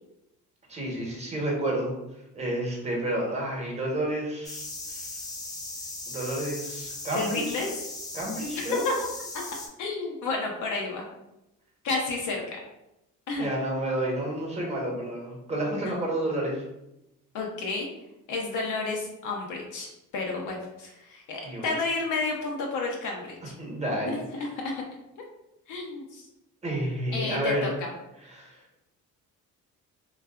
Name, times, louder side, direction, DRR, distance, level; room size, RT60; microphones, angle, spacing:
voice 1, 0.7-1.9 2.3-5.1 6.1-7.7 8.1-8.8 13.4-16.6 21.4-21.7 23.6-24.2 26.6-27.7 28.3-28.6, right 1 dB, 20° right, -2 dB, 0.9 m, -30 dB
sound 1, 4.4-9.7, left 2 dB, 10° left, 0.4 m, -38 dB
voice 2, 7.1-7.7 8.6-9.1 9.8-11.0 11.8-12.6 13.3-13.5 15.8-16.0 17.3-17.9 18.3-23.5 25.7-26.3 27.1-27.9, left 3 dB, 65° left, 0 dB, 0.6 m, -31 dB
2.6 x 2.3 x 2.3 m, 0.90 s
cardioid pair, 90°, 33 cm